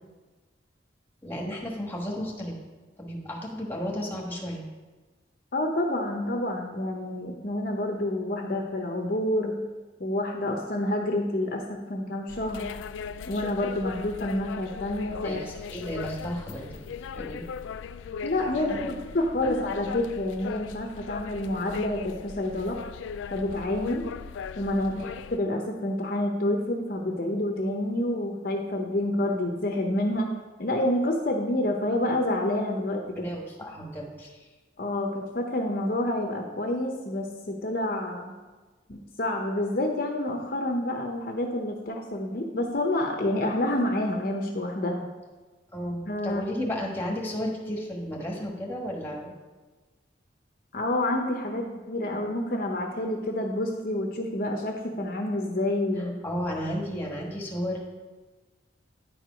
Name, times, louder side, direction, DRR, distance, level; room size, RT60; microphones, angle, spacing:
voice 1, 1.2-2.6 3.0-4.6 15.2-16.8 17.1-17.4 18.7-18.9 19.4-19.5 24.9-25.0 33.1-34.4 45.7-49.3 56.0-57.8, equal, 10° left, -2 dB, 1.4 m, -33 dB
voice 2, 5.5-9.6 10.0-12.7 13.3-15.4 18.2-22.8 23.3-24.1 24.6-30.3 30.6-33.3 34.8-38.3 38.9-45.1 46.1-46.4 50.7-56.1, left 1 dB, 50° left, 2 dB, 0.8 m, -28 dB
sound 1, 12.3-25.4, left 6 dB, 80° left, 0.3 m, -39 dB
9.9 x 4.6 x 5.1 m, 1.3 s
head